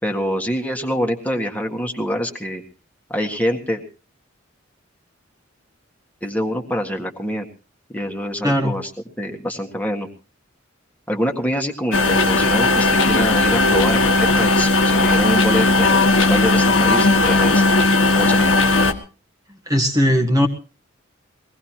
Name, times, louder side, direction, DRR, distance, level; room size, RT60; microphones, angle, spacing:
voice 1, 0.0-2.6 3.1-3.8 6.2-7.5 7.9-8.9 9.2-10.1 11.1-17.6 18.2-18.6, equal, 10° left, 2 dB, 1.8 m, -25 dB
sound 1, 11.9-18.9, left 2 dB, 75° left, 1.7 m, -16 dB
voice 2, 19.7-20.5, equal, 20° right, 2 dB, 1.5 m, -18 dB
22.5 x 18.0 x 2.9 m, 0.35 s
head